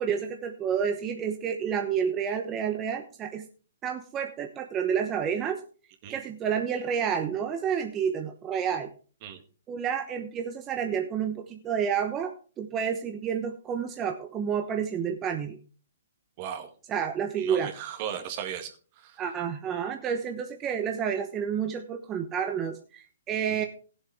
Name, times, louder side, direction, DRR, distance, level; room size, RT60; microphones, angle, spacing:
voice 1, 0.0-3.5 3.8-5.6 6.1-8.9 9.7-15.6 16.9-17.7 19.2-23.7, right 7 dB, 20° right, 4 dB, 1.0 m, -30 dB
voice 2, 16.4-16.7 17.4-18.7 19.0-19.2 23.5-23.6, right 9 dB, 40° right, 5 dB, 2.1 m, -36 dB
17.0 x 7.6 x 3.6 m, 0.38 s
hypercardioid pair, 135°, 0 cm